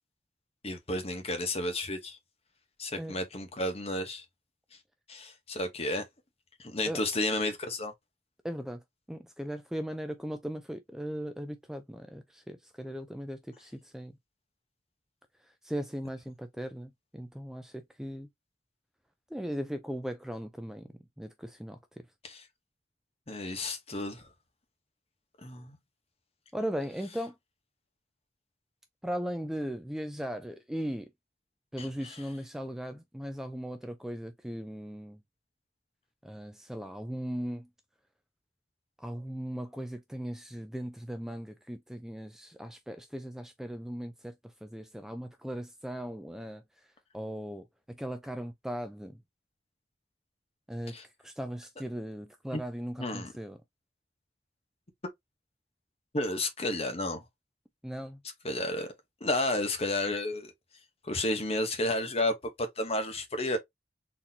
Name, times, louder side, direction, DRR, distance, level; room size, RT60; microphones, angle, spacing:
voice 1, 0.6-2.2 2.8-4.2 5.1-6.0 6.6-7.9 22.2-22.4 23.3-24.2 25.4-25.8 31.8-32.2 50.9-51.0 52.5-52.6 53.0-53.3 56.1-57.2 58.4-58.9 59.2-60.5 61.0-63.6, left 1 dB, 35° left, 0.9 m, -32 dB
voice 2, 8.4-8.8 9.1-14.2 15.6-18.3 19.3-20.9 21.2-22.0 26.5-27.4 29.0-31.1 31.7-35.2 36.2-37.7 39.0-46.6 47.1-49.2 50.7-50.9 51.2-53.6 57.8-58.2, equal, 5° right, 0.3 m, -38 dB
4.0 x 2.8 x 2.7 m
head